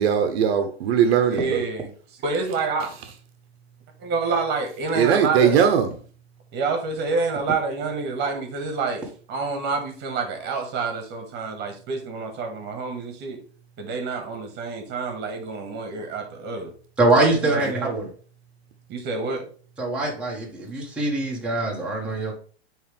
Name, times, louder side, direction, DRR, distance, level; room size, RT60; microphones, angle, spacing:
voice 1, 0.0-1.6 4.9-5.9, right 8 dB, 65° right, 6 dB, 1.0 m, -19 dB
voice 2, 1.3-1.9 2.2-2.9 4.0-5.6 6.5-9.0 9.3-13.4 13.8-16.7 17.4-17.9 18.9-19.4, right 4 dB, 30° right, 5 dB, 1.8 m, -28 dB
voice 3, 17.0-18.1 19.8-22.3, right 2 dB, 5° right, -4 dB, 1.7 m, -23 dB
8.6 x 3.4 x 3.4 m, 0.42 s
hypercardioid pair, 140°, 33 cm